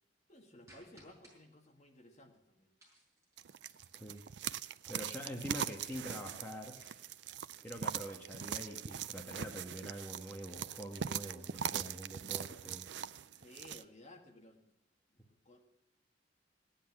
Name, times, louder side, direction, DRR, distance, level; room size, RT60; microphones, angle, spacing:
voice 1, 0.3-2.7 13.3-14.7 15.1-15.7, left 1 dB, 35° left, 2 dB, 1.8 m, -58 dB
sound 1, 0.7-1.4 2.8-4.7 5.7-7.2, right 1 dB, 15° right, 6.2 m, -63 dB
sound 2, 3.4-13.8, right 8 dB, 65° right, 0.4 m, -41 dB
voice 2, 4.9-6.8 7.6-12.9, equal, 10° left, -1 dB, 1.4 m, -45 dB
17.0 x 10.5 x 6.1 m, 0.86 s
head